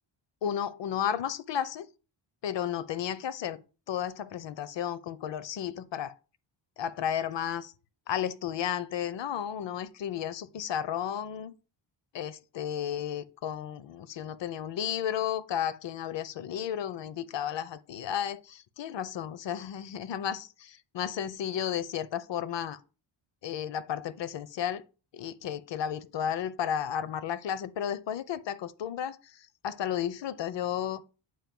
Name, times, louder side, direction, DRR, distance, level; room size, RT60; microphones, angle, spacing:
voice 1, 0.4-1.9 2.4-3.6 3.9-6.1 6.8-7.7 8.1-11.5 12.1-22.8 23.4-24.8 25.1-31.0, left 9 dB, 60° left, 0.6 m, -33 dB
7.5 x 2.6 x 5.3 m
wide cardioid pair, 110°, 48 cm